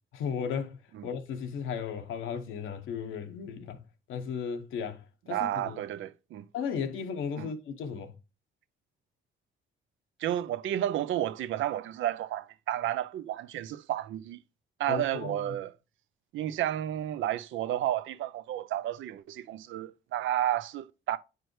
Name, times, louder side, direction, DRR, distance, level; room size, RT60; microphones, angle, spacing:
voice 1, 0.1-0.8 1.0-3.8 4.1-5.0 5.3-5.8 6.5-8.1 14.9-15.4, left 6 dB, 80° left, 1.0 m, -35 dB
voice 2, 5.3-6.5 7.4-7.5 10.2-14.4 14.8-15.7 16.3-21.2, right 12 dB, 75° right, 0.5 m, -31 dB
8.8 x 4.7 x 3.1 m
cardioid pair, 90°, 20 cm